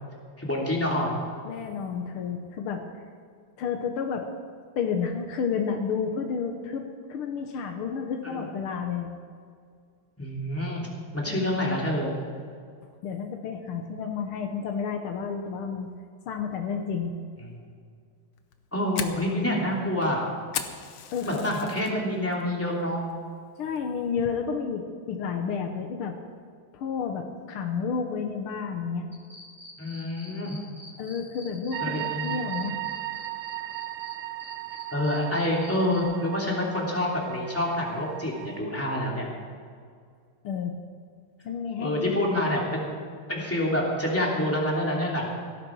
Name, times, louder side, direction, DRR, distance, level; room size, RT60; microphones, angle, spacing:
voice 1, 0.4-1.2 8.2-8.5 10.2-10.9 11.1-12.1 18.7-20.3 21.2-23.0 29.8-30.6 31.8-32.4 34.9-39.3 41.8-43.0 43.3-45.3, left 1 dB, 5° left, -3 dB, 3.0 m, -27 dB
voice 2, 1.5-2.8 3.6-4.3 4.8-9.1 11.3-11.6 13.0-15.9 16.3-17.1 21.1-21.4 23.6-26.2 26.7-29.1 31.0-32.8 40.4-40.8 41.4-42.3, left 6 dB, 90° left, 4 dB, 1.9 m, -31 dB
Fire, 18.4-21.9 22.3-22.7 23.1-23.2 23.8-24.1, left 8 dB, 65° left, 1.5 m, -36 dB
sound 1, 29.1-34.1 34.4-36.0, equal, 10° right, 3.4 m, -46 dB
sound 2, 31.7-38.6, right 15 dB, 75° right, 1.2 m, -36 dB
17.5 x 12.5 x 4.7 m, 2.1 s
omnidirectional pair, 2.3 m